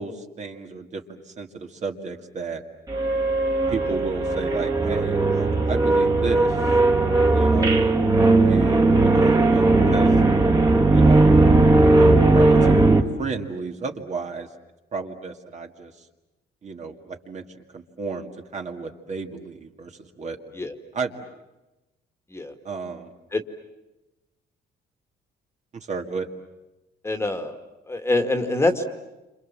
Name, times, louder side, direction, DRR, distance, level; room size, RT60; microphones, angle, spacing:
voice 1, 0.0-2.6 3.7-6.7 7.3-7.8 8.4-10.2 10.9-11.5 12.0-14.5 14.9-16.1 16.6-17.4 17.7-20.4 20.9-21.2 22.6-23.1 25.7-26.3, right 4 dB, 40° right, 4 dB, 2.2 m, -33 dB
sound 1, 2.9-13.0, right 2 dB, 20° right, 2.1 m, -18 dB
voice 2, 27.0-27.6 27.9-28.8, left 2 dB, 15° left, 6 dB, 2.0 m, -25 dB
29.5 x 26.5 x 7.6 m, 1.0 s
cardioid pair, 145°, 19 cm